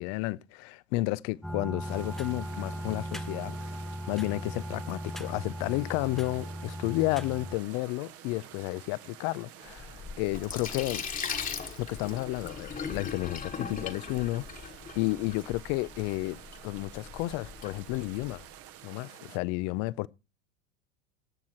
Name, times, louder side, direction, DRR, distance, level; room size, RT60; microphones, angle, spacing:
voice 1, 0.0-3.6 4.1-11.0 11.8-16.4 16.6-18.4 18.8-20.1, left 20 dB, 50° left, 0.6 m, -32 dB
sound 1, 1.4-7.6, equal, ahead, 0.5 m, -38 dB
sound 2, 1.8-19.4, right 11 dB, 40° right, 1.0 m, -50 dB
Sink (filling or washing), 9.7-18.5, left 6 dB, 20° left, 1.4 m, -40 dB
15.5 x 6.3 x 4.4 m
supercardioid pair, 120°, 37 cm